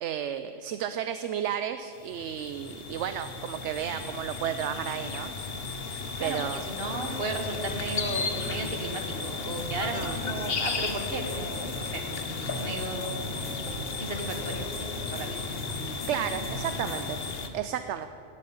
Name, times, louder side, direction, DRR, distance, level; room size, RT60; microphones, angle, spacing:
voice 1, 0.0-5.3 6.2-6.7 9.9-10.3 16.1-17.2 17.5-18.1, right 9 dB, 75° right, 10 dB, 0.9 m, -32 dB
sound 1, 2.0-17.5, left 4 dB, 55° left, 1.2 m, -34 dB
voice 2, 6.2-12.0 12.4-13.6 14.0-15.4 16.8-16.9, right 2 dB, 50° right, 4 dB, 1.7 m, -35 dB
sound 2, 6.9-17.0, left 1 dB, 85° left, 3.1 m, -41 dB
17.5 x 8.5 x 7.1 m, 2.9 s
omnidirectional pair, 1.3 m